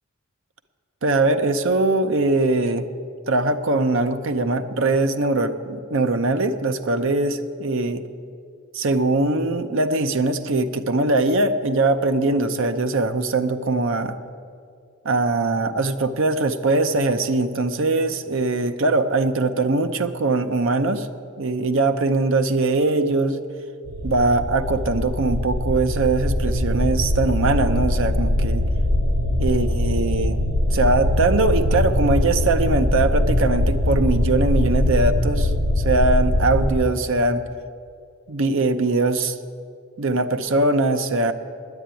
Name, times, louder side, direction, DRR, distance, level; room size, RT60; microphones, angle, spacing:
voice 1, 1.0-2.9 3.3-8.0 8.7-14.2 15.0-21.1 21.4-23.4 24.0-28.7 29.4-30.4 30.7-37.4 38.3-39.4 40.0-41.3, right 2 dB, 60° right, 9 dB, 0.7 m, -21 dB
sound 1, 23.9-36.7, left 1 dB, 85° right, 2.7 m, -22 dB
9.9 x 9.3 x 9.0 m, 2.3 s
head